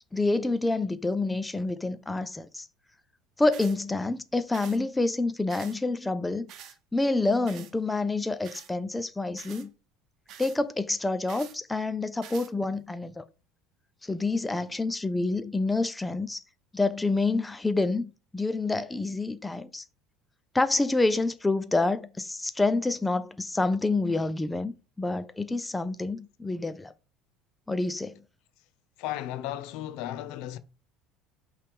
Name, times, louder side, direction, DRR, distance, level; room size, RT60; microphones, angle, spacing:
voice 1, 0.1-2.7 3.4-6.5 6.9-9.7 10.4-13.2 14.0-16.4 16.7-19.8 20.5-24.7 25.0-26.9 27.7-28.1, left 2 dB, 10° left, 0.4 m, -27 dB
sound 1, 3.5-3.8 4.5-4.8 5.5-5.8 6.5-6.8 7.5-7.7 8.4-8.7 9.4-9.7 10.3-10.6 11.3-11.6 12.2-12.5, right 10 dB, 50° right, 0.9 m, -46 dB
voice 2, 29.0-30.6, left 13 dB, 70° left, 0.6 m, -35 dB
5.8 x 3.2 x 5.1 m
cardioid pair, 135°, 0 cm